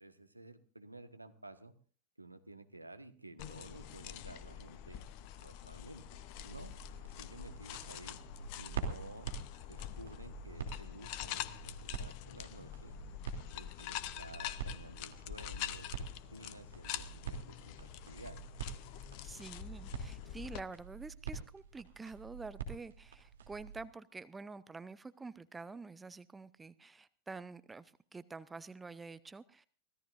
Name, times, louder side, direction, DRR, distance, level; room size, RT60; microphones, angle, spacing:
voice 1, 0.0-1.7 2.2-5.0 5.4-6.0 6.4-6.7 7.0-8.2 8.6-9.3 9.6-13.0 13.5-18.4, right 2 dB, 85° right, 1.3 m, -53 dB
sound 1, 3.4-20.6, left 12 dB, 45° left, 0.8 m, -45 dB
sound 2, 6.3-23.9, right 5 dB, 65° right, 2.9 m, -46 dB
voice 2, 19.2-29.7, right 4 dB, 10° right, 0.6 m, -48 dB
24.0 x 16.5 x 2.6 m
figure-of-eight pair, 90°, 0 cm